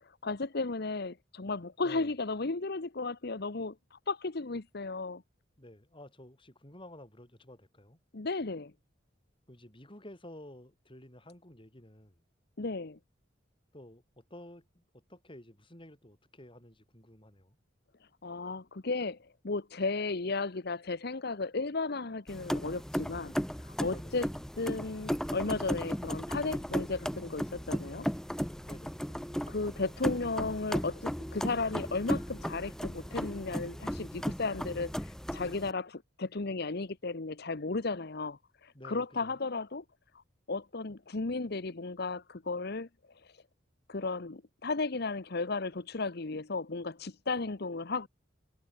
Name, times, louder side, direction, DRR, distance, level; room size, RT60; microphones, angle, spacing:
voice 1, 0.0-5.2 8.1-8.7 12.6-13.0 18.2-23.3 23.6-24.3 24.6-28.1 29.5-39.8 40.5-42.9 43.1-43.4 43.9-48.1, left 3 dB, 55° left, 1.0 m, -35 dB
voice 2, 5.6-8.0 9.5-12.2 13.7-17.6 23.9-24.2 28.6-29.1 38.7-39.4, left 1 dB, 25° left, 5.9 m, -52 dB
sound 1, 22.3-35.7, equal, 5° left, 1.3 m, -35 dB
head